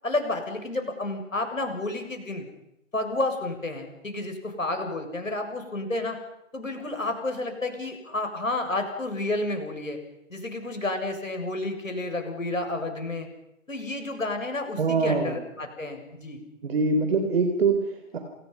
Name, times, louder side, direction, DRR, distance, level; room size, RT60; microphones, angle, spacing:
voice 1, 0.0-2.5 2.9-6.2 6.5-10.0 10.3-13.3 13.7-16.4, left 2 dB, 75° left, 5 dB, 7.4 m, -30 dB
voice 2, 14.8-15.4 16.6-18.2, right 4 dB, 50° right, 6 dB, 4.1 m, -24 dB
29.0 x 29.0 x 5.8 m, 0.85 s
figure-of-eight pair, 135°, 39 cm